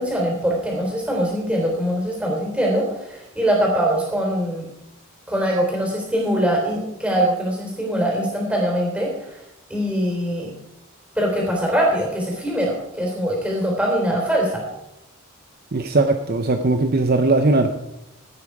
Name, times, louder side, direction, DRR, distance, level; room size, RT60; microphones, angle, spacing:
voice 1, 0.0-4.6 5.3-9.4 9.7-10.5 11.1-14.6, equal, 5° right, -1 dB, 3.6 m, -22 dB
voice 2, 15.7-17.7, right 2 dB, 45° right, 6 dB, 0.7 m, -19 dB
15.5 x 8.7 x 4.8 m, 0.87 s
head